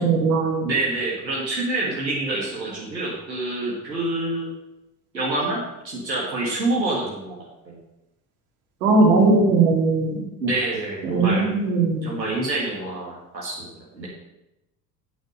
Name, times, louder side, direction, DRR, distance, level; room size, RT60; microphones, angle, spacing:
voice 1, 0.0-0.6 8.8-10.2 11.0-12.1, right 3 dB, 60° right, 0 dB, 2.6 m, -19 dB
voice 2, 0.6-4.5 5.1-7.7 10.4-11.5 12.0-14.1, right 2 dB, 85° right, -5 dB, 1.9 m, -27 dB
8.5 x 8.1 x 5.4 m, 0.92 s
figure-of-eight pair, 65°, 50 cm